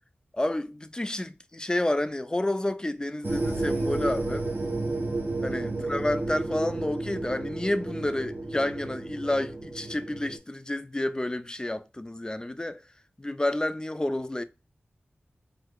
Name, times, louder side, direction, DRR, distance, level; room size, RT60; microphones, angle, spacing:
voice 1, 0.3-4.5 5.4-12.8 13.2-14.4, left 1 dB, 20° left, 0.3 m, -30 dB
sound 1, 3.2-10.4, right 2 dB, 50° right, 1.1 m, -32 dB
4.5 x 2.0 x 2.2 m
cardioid pair, 40°, 4 cm